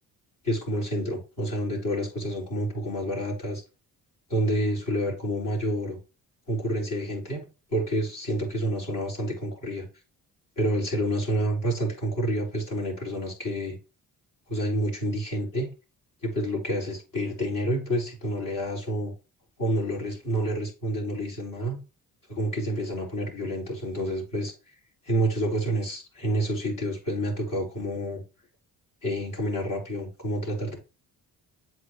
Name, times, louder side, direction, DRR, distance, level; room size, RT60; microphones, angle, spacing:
voice 1, 0.4-3.6 4.3-6.0 6.5-7.4 7.7-9.9 10.6-13.8 14.5-15.7 16.2-19.1 19.6-21.8 22.3-24.5 25.1-28.2 29.0-30.8, right 1 dB, 50° left, -2 dB, 4.4 m, -28 dB
8.0 x 4.8 x 3.2 m, 0.31 s
supercardioid pair, 65°, 40 cm